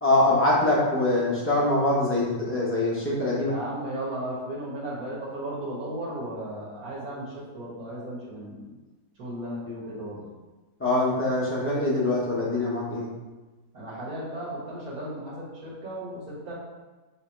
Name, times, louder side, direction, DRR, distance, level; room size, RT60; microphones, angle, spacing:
voice 1, 0.0-3.5 10.8-13.1, left 2 dB, 20° left, -7 dB, 0.3 m, -23 dB
voice 2, 3.3-8.7 9.2-10.2 13.7-16.5, right 1 dB, 60° right, -6 dB, 1.7 m, -35 dB
3.4 x 2.9 x 4.5 m, 1.2 s
omnidirectional pair, 1.8 m